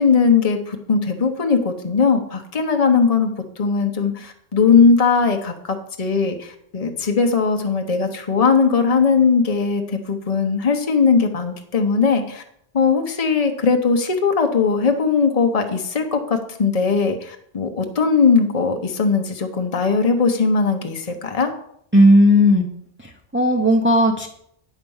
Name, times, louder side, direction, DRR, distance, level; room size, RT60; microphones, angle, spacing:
voice 1, 0.0-3.3 3.6-12.4 12.7-21.5, left 5 dB, 35° left, 5 dB, 1.0 m, -19 dB
voice 2, 21.9-22.7 23.3-24.3, equal, 10° right, 0 dB, 0.9 m, -14 dB
9.3 x 5.1 x 7.1 m, 0.69 s
omnidirectional pair, 1.1 m